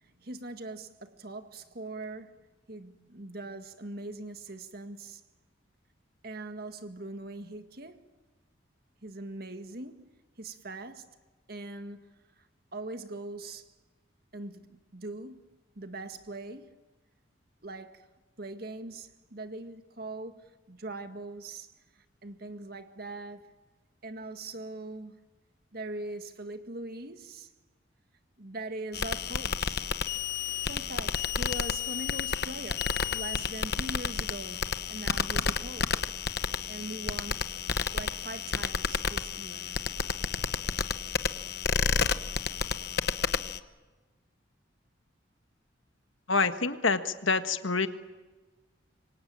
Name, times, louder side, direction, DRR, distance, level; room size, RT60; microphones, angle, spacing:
voice 1, 0.2-2.3 2.7-5.2 6.2-8.0 9.0-10.0 10.4-11.1 11.5-12.0 12.7-13.7 14.3-15.5 15.8-16.8 17.6-18.0 18.4-20.4 20.7-21.7 22.2-23.5 24.0-25.2 25.7-27.5 28.4-29.9 30.7-36.1 36.7-37.5 37.9-39.8, right 2 dB, 50° right, 1.9 m, -41 dB
sound 1, 28.9-43.6, left 6 dB, 55° left, 1.0 m, -31 dB
voice 2, 46.3-47.9, left 4 dB, 90° left, 1.6 m, -27 dB
27.0 x 24.0 x 8.9 m
head